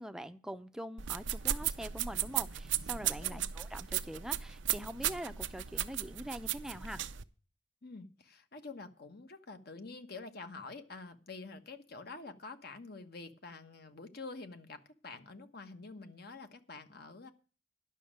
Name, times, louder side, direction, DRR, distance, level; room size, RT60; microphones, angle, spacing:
voice 1, 0.0-7.0, equal, 5° right, 10 dB, 0.6 m, -43 dB
sound 1, 1.0-7.2, right 11 dB, 90° right, 0.6 m, -36 dB
voice 2, 7.8-17.3, left 3 dB, 60° left, 8 dB, 1.2 m, -47 dB
11.0 x 6.2 x 8.8 m, 0.37 s
head